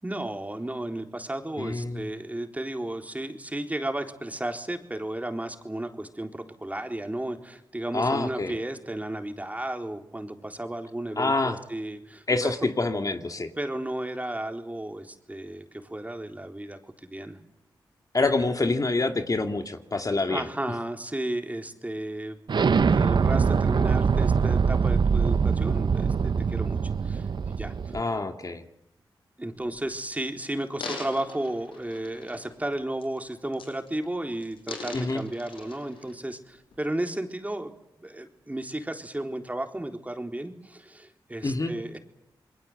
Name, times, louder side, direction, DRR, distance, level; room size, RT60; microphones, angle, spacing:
voice 1, 0.0-12.5 13.6-17.4 20.3-28.0 29.4-37.7 38.0-42.0, right 1 dB, 15° right, 5 dB, 3.8 m, -34 dB
voice 2, 1.6-2.0 7.9-8.5 11.2-11.6 12.3-13.5 18.1-20.4 27.9-28.6 34.9-35.2 41.4-41.7, left 3 dB, 40° left, 6 dB, 2.4 m, -26 dB
Explosion, 22.5-28.0, right 5 dB, 60° right, 1.0 m, -23 dB
sound 1, 30.5-32.6 33.0-33.2 33.5-34.1 34.4-36.1 36.7-36.8, left 4 dB, 80° left, 7.0 m, -41 dB
28.5 x 22.0 x 8.0 m, 0.80 s
cardioid pair, 50°, 9 cm